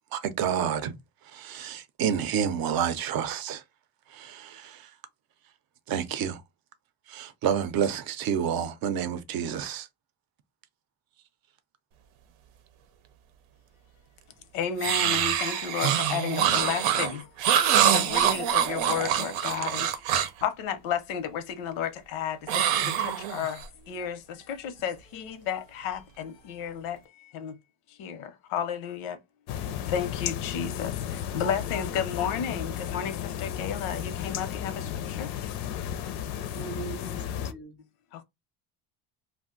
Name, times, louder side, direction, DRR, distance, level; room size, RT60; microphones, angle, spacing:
voice 1, 0.1-0.9 1.3-3.6 4.1-4.8 5.9-6.4 7.1-9.9, right 8 dB, 50° right, 0.6 m, -29 dB
voice 2, 14.5-17.3 17.8-20.0 20.4-27.6 27.9-29.2 29.6-35.3 38.1-38.2, left 8 dB, 85° left, 0.8 m, -33 dB
sound 1, 14.8-20.4 22.5-23.7, right 10 dB, 85° right, 0.7 m, -25 dB
sound 2, 29.5-37.5, left 10 dB, 55° left, 0.5 m, -34 dB
voice 3, 36.3-37.8, right 6 dB, ahead, 0.4 m, -41 dB
2.4 x 2.1 x 3.7 m
cardioid pair, 140°, 47 cm